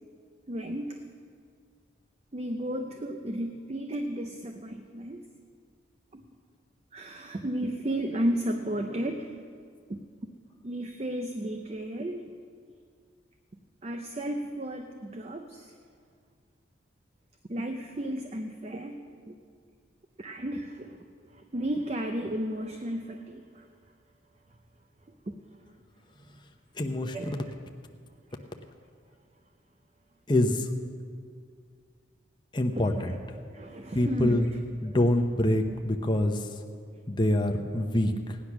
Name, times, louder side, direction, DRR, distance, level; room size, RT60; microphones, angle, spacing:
voice 1, 0.5-1.0 2.3-5.2 6.1-6.2 6.9-9.3 9.9-10.0 10.6-12.3 13.8-15.7 17.5-19.4 20.2-21.0 21.5-23.6 25.3-25.4 27.1-27.5 33.0-33.1 33.5-34.5 34.9-35.0, right 1 dB, 35° right, 5 dB, 0.6 m, -33 dB
voice 2, 26.8-27.3 30.3-30.7 32.5-33.2 33.9-34.5 34.8-36.5 37.1-38.4, left 1 dB, 25° left, 4 dB, 0.8 m, -25 dB
17.0 x 10.0 x 6.0 m, 2.2 s
head